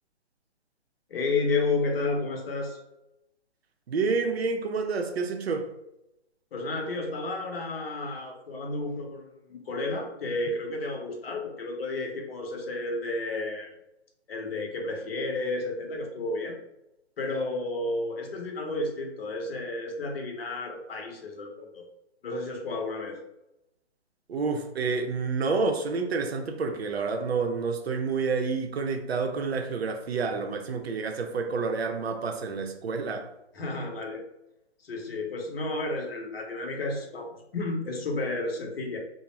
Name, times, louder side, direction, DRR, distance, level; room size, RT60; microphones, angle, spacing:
voice 1, 1.1-2.8 6.5-13.7 14.3-16.6 17.2-21.8 22.2-23.2 33.5-34.2 34.8-39.0, left 2 dB, 55° left, 0.8 m, -32 dB
voice 2, 3.9-5.7 24.3-33.3, right 4 dB, 60° right, 0.6 m, -29 dB
2.5 x 2.1 x 3.0 m
hypercardioid pair, 150°, 35 cm